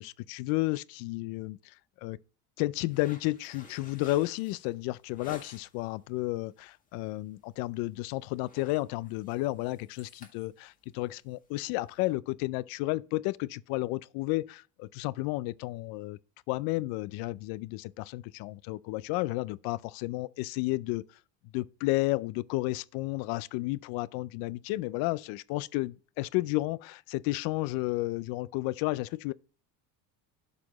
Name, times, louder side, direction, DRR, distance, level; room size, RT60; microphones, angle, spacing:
voice 1, 0.0-1.7 2.0-2.2 2.6-16.2 16.5-21.0 21.5-29.3, left 19 dB, 75° left, 0.5 m, -32 dB
sound 1, 2.9-5.9 6.3-6.7 7.0-7.2 7.6-8.0 8.2-12.1, left 3 dB, 20° left, 1.7 m, -53 dB
12.0 x 4.3 x 3.0 m
cardioid pair, 130°, 36 cm